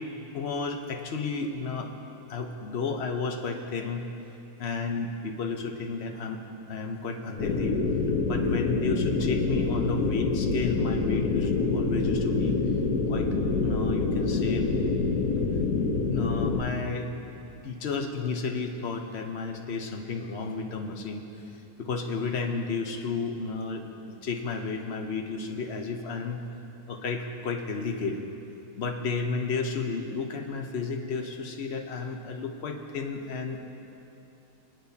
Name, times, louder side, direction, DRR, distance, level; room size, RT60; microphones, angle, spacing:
voice 1, 0.3-1.9 2.3-4.1 4.6-6.4 6.7-7.8 8.2-12.5 13.1-13.3 13.6-14.7 16.1-17.1 17.6-26.4 26.9-28.2 28.8-33.6, left 4 dB, 50° left, 4 dB, 1.0 m, -32 dB
sound 1, 7.4-16.6, left 4 dB, 75° left, 1.5 m, -26 dB
24.5 x 8.8 x 2.8 m, 3.0 s
omnidirectional pair, 1.6 m